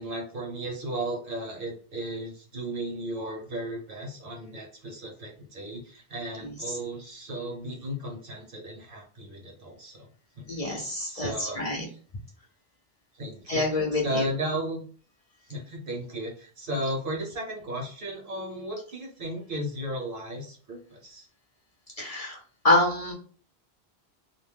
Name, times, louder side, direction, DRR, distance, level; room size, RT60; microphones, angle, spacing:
voice 1, 0.0-10.1 10.4-10.8 11.1-11.6 13.1-14.8 15.5-21.3, right 1 dB, 60° right, 0 dB, 1.1 m, -35 dB
voice 2, 6.4-6.8 10.5-11.8 13.5-14.3 22.0-22.4 22.6-23.1, left 2 dB, 45° left, -1 dB, 0.6 m, -26 dB
2.6 x 2.1 x 3.3 m, 0.42 s
omnidirectional pair, 1.0 m